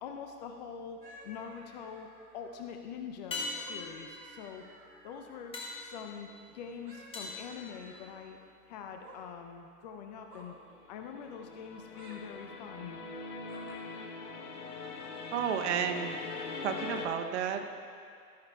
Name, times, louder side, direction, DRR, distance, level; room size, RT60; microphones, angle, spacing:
voice 1, 0.0-2.1 2.3-4.6 5.0-6.3 6.5-8.4 8.7-10.5 10.9-13.0, left 7 dB, 30° left, 4 dB, 0.5 m, -44 dB
sound 1, 1.0-1.6 3.3-8.5 12.9-13.0, left 3 dB, 10° left, 1.5 m, -43 dB
sound 2, 1.0-2.6 3.3-5.7 6.8-8.2 8.9-9.2 10.3-10.6 11.7-12.2 13.4-13.8, right 1 dB, 85° right, 1.8 m, -54 dB
sound 3, 10.5-17.1, left 4 dB, 70° left, 1.2 m, -42 dB
voice 2, 15.3-16.2 16.6-17.8, right 8 dB, 45° right, 6 dB, 0.7 m, -32 dB
13.5 x 10.0 x 2.3 m, 2.4 s
hypercardioid pair, 110°, 46 cm